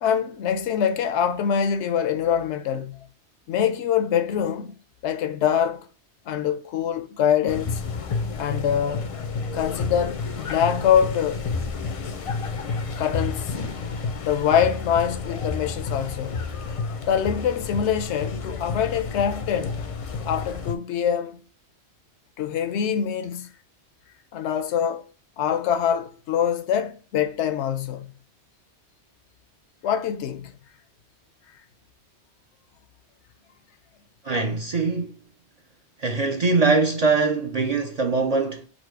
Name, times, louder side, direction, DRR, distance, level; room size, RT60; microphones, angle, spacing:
voice 1, 0.0-3.0 3.5-5.8 6.3-7.8 8.4-9.1 9.5-11.4 13.0-13.5 14.2-16.5 17.1-19.8 20.3-21.4 22.4-23.5 24.3-25.1 25.4-28.1 29.8-30.5, left 8 dB, 80° left, 0.9 m, -24 dB
sound 1, 7.5-20.7, left 4 dB, 50° left, 0.4 m, -30 dB
voice 2, 34.2-35.2 36.0-38.7, right 4 dB, 50° right, 0.5 m, -22 dB
4.1 x 2.6 x 4.4 m
omnidirectional pair, 1.1 m